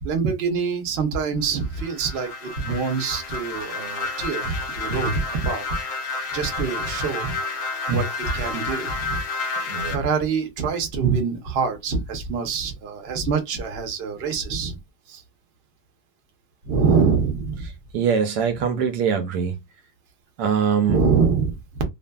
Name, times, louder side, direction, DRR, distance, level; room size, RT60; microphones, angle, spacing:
voice 1, 0.0-5.6 6.3-7.4 7.9-9.2 9.9-14.8 15.1-15.2 16.6-17.7 20.9-21.8, right 5 dB, 50° right, 0.8 m, -25 dB
sound 1, 1.6-10.0, left 3 dB, 60° left, 0.7 m, -30 dB
voice 2, 9.7-10.0 17.9-19.6 20.4-21.0, right 7 dB, 80° right, 1.1 m, -22 dB
2.6 x 2.5 x 2.2 m
omnidirectional pair, 1.8 m